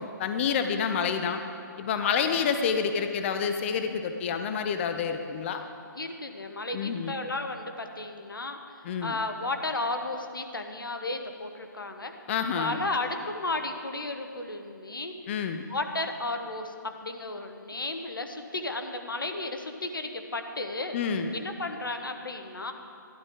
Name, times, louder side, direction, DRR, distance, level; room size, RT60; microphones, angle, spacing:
voice 1, 0.0-1.4 1.8-5.6 6.7-7.2 8.8-9.2 12.3-12.8 15.3-15.6 20.9-21.4, left 6 dB, 35° left, 7 dB, 0.6 m, -28 dB
voice 2, 6.0-8.6 9.0-12.1 12.6-15.1 15.7-21.0 21.3-22.7, left 2 dB, 90° left, 6 dB, 1.0 m, -33 dB
12.0 x 11.5 x 3.8 m, 2.4 s
figure-of-eight pair, 140°, 11 cm